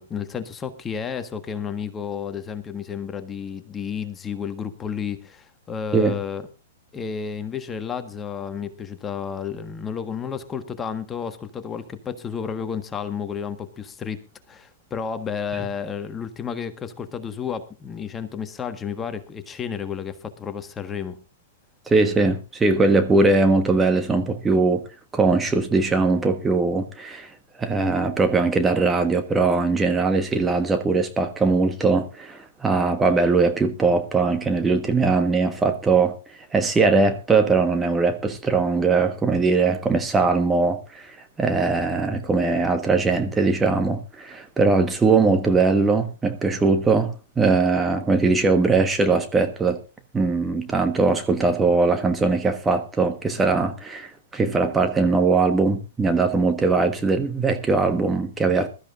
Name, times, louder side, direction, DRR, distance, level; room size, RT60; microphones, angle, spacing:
voice 1, 0.0-6.5 6.9-21.2, left 7 dB, 20° left, 1.5 m, -31 dB
voice 2, 21.9-24.8 25.1-27.3 27.6-36.1 36.5-49.8 50.1-58.7, right 3 dB, 15° right, 1.3 m, -20 dB
21.5 x 13.0 x 2.6 m
figure-of-eight pair, 110°, 0 cm